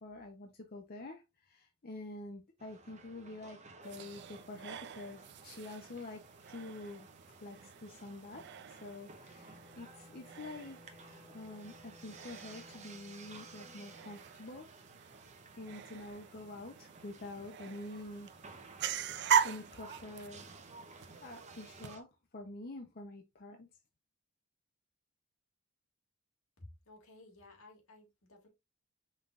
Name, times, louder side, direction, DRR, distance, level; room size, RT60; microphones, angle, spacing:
voice 1, 0.0-6.2 6.5-7.1 7.4-14.7 15.6-18.3 19.4-20.5 20.9-22.1 22.3-23.7, left 2 dB, 45° left, 0.7 m, -47 dB
sound 1, 2.6-22.0, right 3 dB, 35° right, 0.8 m, -55 dB
sound 2, 3.8-21.9, right 8 dB, 55° right, 0.4 m, -41 dB
Wind instrument woodwind instrument, 9.1-14.3, left 2 dB, 5° left, 0.8 m, -60 dB
voice 2, 26.6-28.5, left 2 dB, 80° left, 2.0 m, -56 dB
5.4 x 3.7 x 2.4 m
head